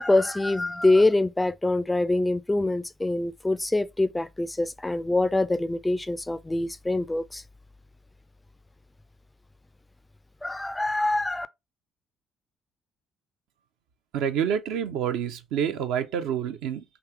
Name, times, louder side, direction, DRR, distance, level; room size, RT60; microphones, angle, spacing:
voice 1, 0.0-7.4 10.4-11.5, left 2 dB, 10° left, 0.3 m, -24 dB
voice 2, 14.1-16.8, right 8 dB, 65° right, 0.5 m, -28 dB
3.6 x 2.9 x 4.4 m
figure-of-eight pair, 50°, 0 cm